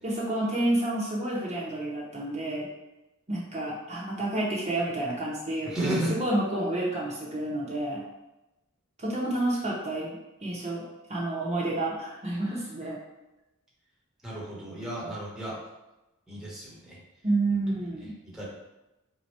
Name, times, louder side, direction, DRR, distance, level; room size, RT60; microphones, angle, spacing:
voice 1, 0.0-2.7 3.3-8.0 9.0-10.8 11.1-13.0 17.2-18.1, right 2 dB, 30° right, -5 dB, 0.9 m, -29 dB
voice 2, 5.6-6.1 14.2-15.6 16.3-17.0 18.2-18.5, right 1 dB, ahead, -6 dB, 1.1 m, -32 dB
3.8 x 2.8 x 4.5 m, 0.99 s
head